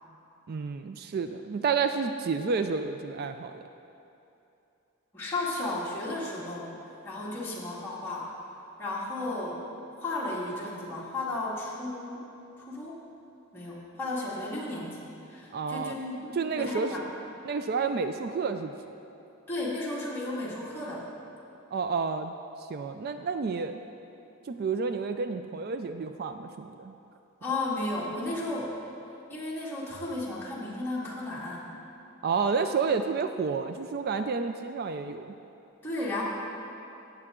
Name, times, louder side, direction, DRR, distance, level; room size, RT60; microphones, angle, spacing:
voice 1, 0.5-3.6 15.5-15.9 16.3-16.9 17.5-19.0 21.7-22.3 22.6-23.8 24.5-26.9 32.2-35.3, right 5 dB, 45° right, 8 dB, 0.4 m, -30 dB
voice 2, 5.1-6.7 7.0-8.3 8.8-9.6 10.0-12.3 12.6-13.0 13.5-17.0 19.5-21.1 27.4-28.8 29.3-31.7 35.8-36.2, left 2 dB, 10° left, -8 dB, 2.2 m, -34 dB
15.5 x 8.1 x 3.7 m, 2.8 s
head